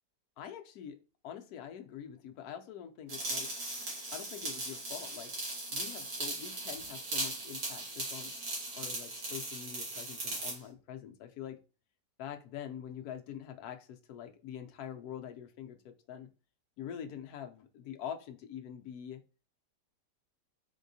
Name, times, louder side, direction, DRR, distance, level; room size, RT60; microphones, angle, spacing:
voice 1, 0.4-1.0 1.2-3.5 4.1-5.4 5.7-8.3 8.7-11.6 12.2-16.3 16.8-19.2, left 9 dB, 70° left, 5 dB, 1.0 m, -45 dB
sound 1, 3.1-10.6, right 2 dB, 60° right, 1.7 m, -38 dB
3.6 x 3.5 x 2.7 m, 0.35 s
omnidirectional pair, 1.8 m